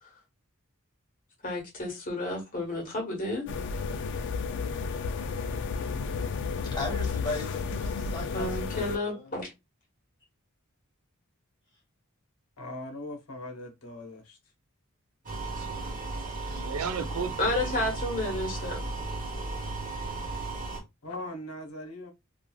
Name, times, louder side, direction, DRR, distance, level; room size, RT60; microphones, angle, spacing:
voice 1, 1.4-3.5 8.3-9.5 17.4-18.8, left 2 dB, 40° left, 1.3 m, -31 dB
sound 1, 3.5-9.0, left 5 dB, 55° left, 0.3 m, -32 dB
voice 2, 6.7-9.3, left 2 dB, 20° left, 1.3 m, -37 dB
voice 3, 12.6-14.4 21.0-22.1, left 1 dB, 85° left, 0.8 m, -40 dB
sound 2, 15.3-20.8, right 2 dB, 40° right, 0.9 m, -35 dB
voice 4, 15.5-18.0, right 6 dB, 85° right, 0.4 m, -37 dB
3.0 x 2.4 x 2.2 m
head